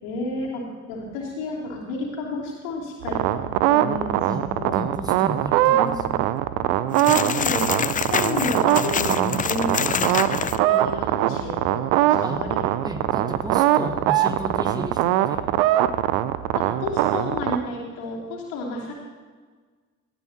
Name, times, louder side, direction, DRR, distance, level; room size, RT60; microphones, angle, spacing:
voice 1, 0.0-4.8 5.5-6.2 6.6-12.6 16.5-18.9, left 2 dB, 75° left, -3 dB, 3.0 m, -32 dB
sound 1, 3.0-17.6, right 13 dB, 70° right, 0.7 m, -22 dB
voice 2, 4.7-6.3 12.2-12.4 12.8-15.4 16.7-16.8, equal, 10° right, 4 dB, 1.6 m, -33 dB
sound 2, 6.9-10.6, left 8 dB, 20° left, 0.4 m, -26 dB
18.0 x 12.5 x 2.9 m, 1.5 s
hypercardioid pair, 50°, 40 cm